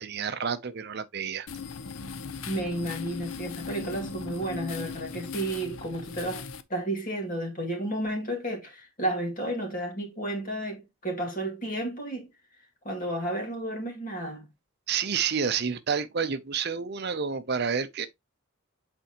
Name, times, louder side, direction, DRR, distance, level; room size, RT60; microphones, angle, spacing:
voice 1, 0.0-1.5 14.9-18.1, right 6 dB, 50° right, 0.6 m, -29 dB
sound 1, 1.5-6.6, left 5 dB, 70° left, 0.6 m, -38 dB
voice 2, 2.4-12.3 12.8-14.5, right 1 dB, 40° left, 2.2 m, -32 dB
8.0 x 4.4 x 2.9 m
head